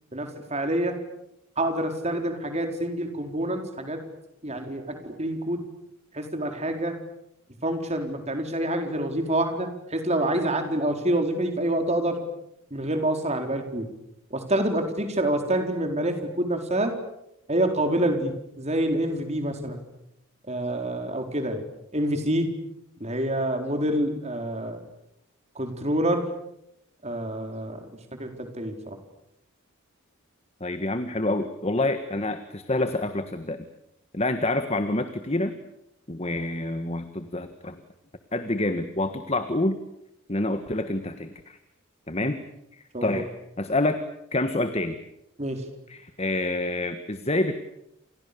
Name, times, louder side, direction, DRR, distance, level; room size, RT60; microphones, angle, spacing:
voice 1, 0.1-1.0 1.6-4.0 4.4-5.6 6.1-7.0 7.6-12.2 12.7-13.9 14.3-16.9 17.5-19.8 20.5-21.6 21.9-22.5 23.0-24.8 25.6-26.3 27.0-27.8 28.2-28.9 42.9-43.2 45.4-45.6, right 1 dB, 30° right, 5 dB, 4.4 m, -27 dB
voice 2, 30.6-33.6 34.1-35.6 36.1-37.8 38.3-39.8 40.3-41.6 42.1-42.4 42.7-43.3 43.6-44.0 44.3-45.0 45.9-47.6, left 2 dB, 30° left, 9 dB, 1.5 m, -27 dB
29.5 x 28.0 x 7.0 m, 0.81 s
head